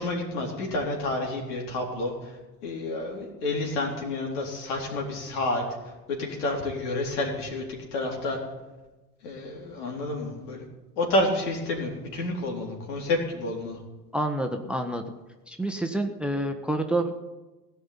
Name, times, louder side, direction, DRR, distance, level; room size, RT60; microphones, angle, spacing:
voice 1, 0.0-2.4 2.6-5.6 6.1-8.4 9.2-10.6 11.0-13.8, left 2 dB, 70° left, 0 dB, 3.8 m, -29 dB
voice 2, 14.1-15.0 15.5-17.3, right 1 dB, ahead, 6 dB, 1.1 m, -28 dB
17.0 x 5.7 x 9.6 m, 1.1 s
hypercardioid pair, 70°, 48 cm